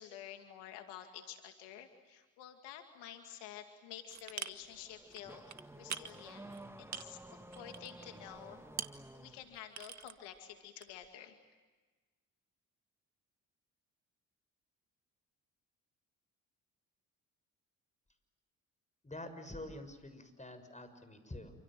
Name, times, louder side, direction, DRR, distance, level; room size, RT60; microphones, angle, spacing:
voice 1, 0.0-6.5 6.8-8.6 9.1-11.4, left 10 dB, 85° left, 6 dB, 2.4 m, -50 dB
sound 1, 4.1-4.9 5.1-8.1 8.4-9.1 9.4-10.4 10.8-11.1, right 7 dB, 45° right, 1.6 m, -44 dB
Car / Accelerating revving vroom, 4.5-9.5, right 1 dB, 5° right, 2.6 m, -53 dB
voice 2, 19.0-21.5, left 1 dB, 20° left, 9 dB, 6.6 m, -47 dB
28.0 x 27.0 x 7.6 m, 1.3 s
hypercardioid pair, 55°, 40 cm